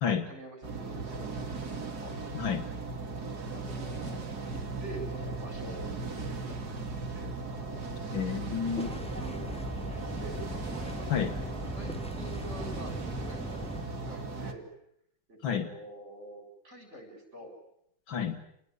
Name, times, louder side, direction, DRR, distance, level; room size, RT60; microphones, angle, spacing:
voice 1, 0.2-2.1 3.3-7.3 7.6-7.8 8.9-9.6 9.8-10.4 11.0-11.3 11.8-14.7 15.3-17.5, right 1 dB, 35° right, 4 dB, 7.9 m, -47 dB
sound 1, 0.6-14.5, right 3 dB, 55° right, 3.0 m, -37 dB
voice 2, 8.1-9.0 11.1-11.3 15.4-15.7 18.1-18.4, left 7 dB, 80° left, 9 dB, 2.6 m, -30 dB
sound 2, 8.6-13.8, left 1 dB, 5° left, 0.6 m, -40 dB
29.0 x 20.5 x 10.0 m, 0.75 s
omnidirectional pair, 2.1 m